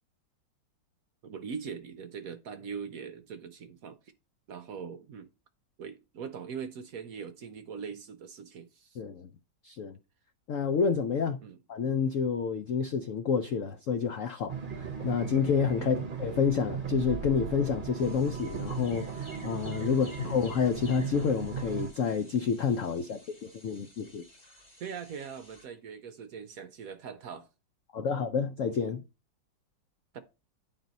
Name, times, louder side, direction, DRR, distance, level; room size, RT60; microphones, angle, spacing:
voice 1, 1.2-4.0 4.5-5.3 5.8-9.0 11.4-11.6 15.8-16.1 19.9-20.4 24.8-27.5 28.0-28.1 30.1-30.2, right 6 dB, 65° right, 0.9 m, -41 dB
voice 2, 9.0-9.3 9.6-10.0 10.5-11.4 11.7-23.2 23.6-24.2 27.9-29.0, left 6 dB, 75° left, 0.7 m, -29 dB
sound 1, 14.5-21.9, right 6 dB, 35° right, 1.0 m, -37 dB
sound 2, 18.0-25.7, left 1 dB, 20° left, 1.9 m, -54 dB
10.5 x 4.0 x 4.0 m
omnidirectional pair, 2.0 m